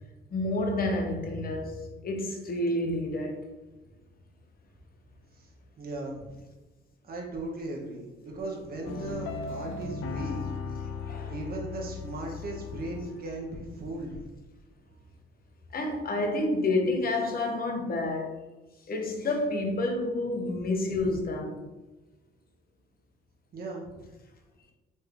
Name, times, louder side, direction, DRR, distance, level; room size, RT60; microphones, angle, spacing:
voice 1, 0.3-1.8 2.0-3.4 11.1-11.3 15.7-18.3 18.9-21.5, left 2 dB, 50° left, 1.0 m, -29 dB
voice 2, 5.8-6.3 7.0-10.4 11.3-14.2 23.5-24.0, right 2 dB, 50° right, 1.3 m, -37 dB
sound 1, 8.8-13.4, left 5 dB, 90° left, 0.5 m, -37 dB
4.3 x 3.3 x 3.5 m
cardioid pair, 90°, 20 cm